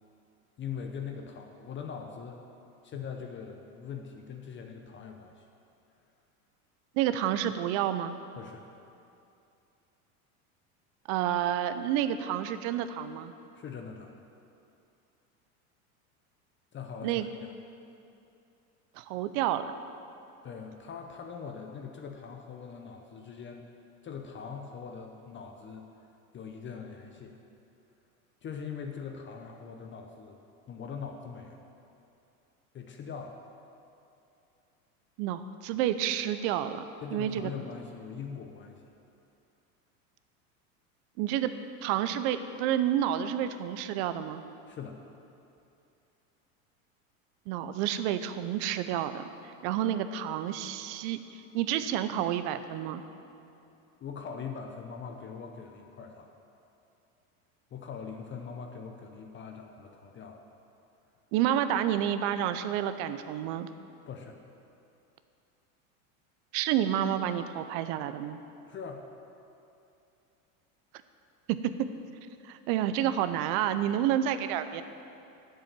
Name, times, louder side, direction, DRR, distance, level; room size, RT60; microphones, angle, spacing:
voice 1, 0.6-2.4 2.8-5.5 8.4-8.7 13.6-14.1 16.7-17.5 20.4-23.7 24.0-25.9 26.3-27.4 28.4-30.4 30.7-31.6 32.7-33.4 37.0-38.8 44.7-45.0 54.0-56.3 57.7-60.4 64.1-64.4 68.7-69.1, left 6 dB, 25° left, 3 dB, 0.7 m, -42 dB
voice 2, 7.0-8.2 11.1-13.3 17.0-17.3 19.0-19.7 35.2-36.8 37.1-37.5 41.2-41.5 41.8-44.4 47.5-49.2 49.6-53.0 61.3-63.7 66.5-68.4 72.4-74.8, right 11 dB, 55° right, 11 dB, 0.6 m, -29 dB
7.8 x 7.5 x 6.7 m, 2.7 s
hypercardioid pair, 105°, 43 cm